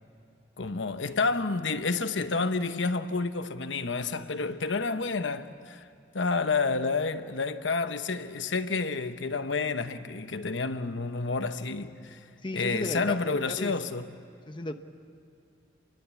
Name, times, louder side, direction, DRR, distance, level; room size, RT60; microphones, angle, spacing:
voice 1, 0.6-5.8 6.1-12.2 12.5-14.1, left 4 dB, 90° left, 1.0 m, -29 dB
voice 2, 12.4-13.8 14.5-14.7, left 1 dB, 25° left, 1.0 m, -35 dB
29.0 x 22.5 x 8.3 m
head